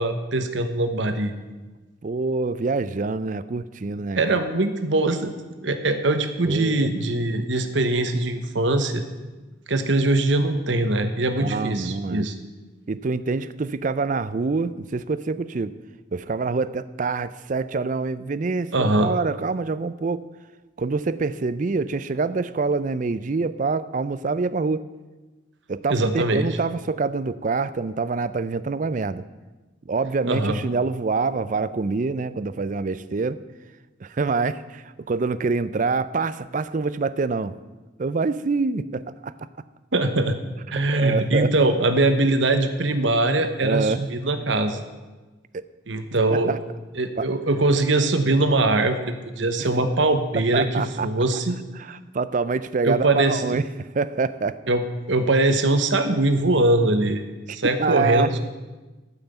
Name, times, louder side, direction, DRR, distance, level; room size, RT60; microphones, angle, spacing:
voice 1, 0.0-1.3 4.2-5.3 5.6-9.0 9.7-12.3 18.7-19.1 25.9-26.5 30.3-30.6 39.9-40.4 40.7-44.8 45.9-46.5 47.0-51.6 52.8-53.6 54.7-57.2 57.5-58.4, right 2 dB, 65° right, 8 dB, 1.1 m, -22 dB
voice 2, 2.0-4.2 6.5-6.9 11.4-12.3 12.9-15.7 16.1-20.3 20.8-24.9 25.7-29.2 29.9-33.4 34.0-37.5 38.0-39.3 40.8-41.7 43.6-44.0 45.5-45.6 46.3-46.6 47.2-47.3 50.3-51.2 51.8-54.6 57.6-58.4, right 4 dB, 40° right, 15 dB, 0.4 m, -26 dB
13.0 x 5.8 x 8.0 m, 1.2 s
head